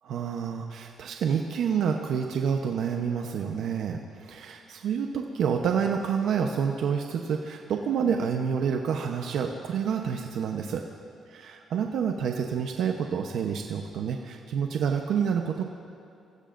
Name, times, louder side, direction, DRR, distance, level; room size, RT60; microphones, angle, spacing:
voice 1, 0.0-10.8 11.3-15.6, right 7 dB, 75° right, 3 dB, 0.9 m, -28 dB
25.0 x 15.5 x 2.6 m, 2.6 s
cardioid pair, 90°, 0 cm